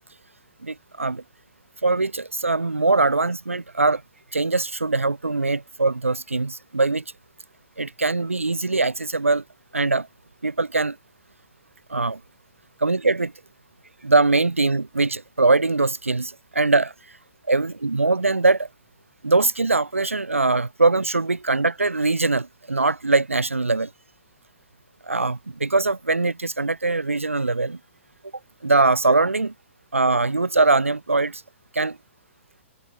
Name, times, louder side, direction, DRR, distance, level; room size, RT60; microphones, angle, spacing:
voice 1, 0.6-1.2 1.8-4.0 4.3-7.0 7.8-9.4 9.7-10.1 10.4-11.0 11.9-12.2 12.8-13.3 14.0-16.9 17.5-18.7 19.2-23.9 25.0-27.8 28.6-29.5 29.9-31.4 31.7-32.0, right 3 dB, 80° right, 2.4 m, -22 dB
figure-of-eight pair, 115°, 7 cm